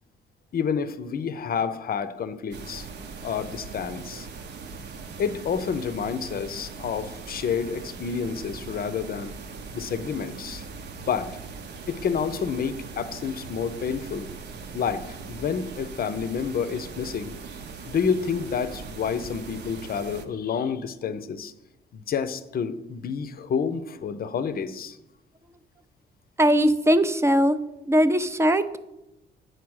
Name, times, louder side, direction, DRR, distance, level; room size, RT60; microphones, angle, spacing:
voice 1, 0.5-2.9 3.2-4.3 5.2-9.4 9.7-10.6 11.1-11.4 11.9-14.3 14.7-17.4 17.9-21.5 21.9-25.0, left 6 dB, 50° left, 14 dB, 0.6 m, -29 dB
sound 1, 2.5-20.3, right 4 dB, 60° right, 0.8 m, -40 dB
voice 2, 26.4-27.6 27.8-28.8, equal, 15° right, 11 dB, 0.6 m, -20 dB
8.0 x 4.7 x 6.3 m, 0.92 s
cardioid pair, 90°, 20 cm